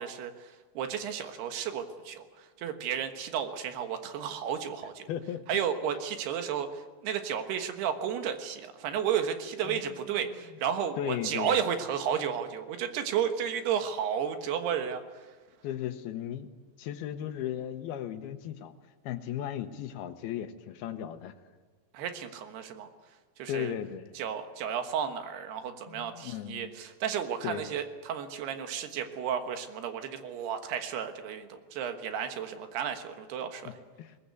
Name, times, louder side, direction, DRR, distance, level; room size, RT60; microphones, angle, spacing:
voice 1, 0.0-5.1 5.5-15.3 21.9-22.9 23.4-23.7 24.2-33.8, right 8 dB, 80° right, 7 dB, 3.4 m, -33 dB
voice 2, 5.1-5.4 9.6-9.8 11.0-11.6 15.6-16.5 16.8-18.7 19.0-21.4 23.5-24.1 25.9-26.7 27.4-27.6 34.0-34.2, left 11 dB, 75° left, 9 dB, 2.8 m, -36 dB
21.0 x 19.5 x 8.3 m, 1.4 s
omnidirectional pair, 4.7 m